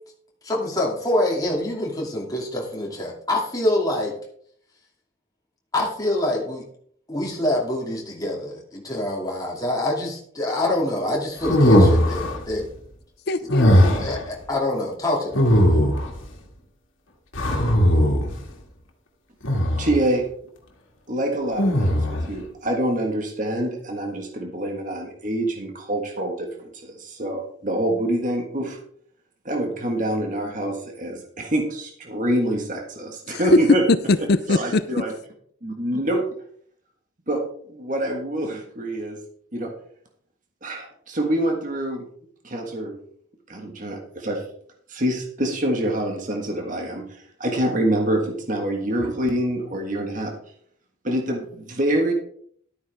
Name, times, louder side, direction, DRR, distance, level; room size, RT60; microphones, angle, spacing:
voice 1, 0.4-4.2 5.7-6.7 7.1-12.7 14.0-15.6, left 1 dB, 20° left, -2 dB, 2.5 m, -25 dB
sound 1, 11.4-12.4 13.5-14.2 15.3-16.2 17.3-18.4 19.4-20.0 21.6-22.3, equal, 75° left, 2.1 m, -18 dB
voice 2, 13.3-14.0 33.3-33.6 33.9-34.8, left 3 dB, 50° left, 13 dB, 0.5 m, -21 dB
voice 3, 19.8-20.2 21.1-26.5 26.8-28.8 29.4-33.8 34.5-35.1 35.6-36.2 37.3-37.4 37.7-39.2 39.5-39.7 40.6-42.1 42.4-43.0 43.5-44.4 44.9-50.3 51.0-52.1, right 1 dB, 40° right, 1 dB, 1.6 m, -26 dB
12.5 x 9.3 x 3.6 m, 0.62 s
head